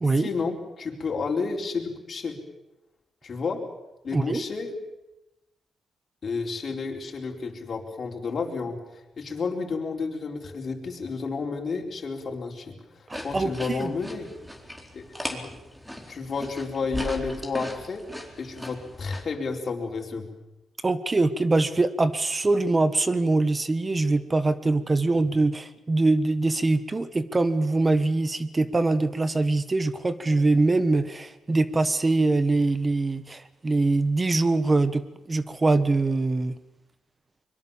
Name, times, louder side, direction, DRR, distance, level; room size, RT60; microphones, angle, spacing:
voice 1, 0.2-2.4 3.2-3.6 4.0-4.7 6.2-14.3 14.9-15.5 16.1-18.0 18.4-20.3, left 4 dB, 50° left, 1 dB, 4.4 m, -31 dB
voice 2, 4.1-4.4 13.1-13.9 20.8-36.5, right 2 dB, 25° right, 13 dB, 1.3 m, -23 dB
sound 1, 13.1-19.2, equal, 5° right, 4.3 m, -38 dB
24.0 x 22.5 x 7.2 m, 0.98 s
cardioid pair, 85°, 0 cm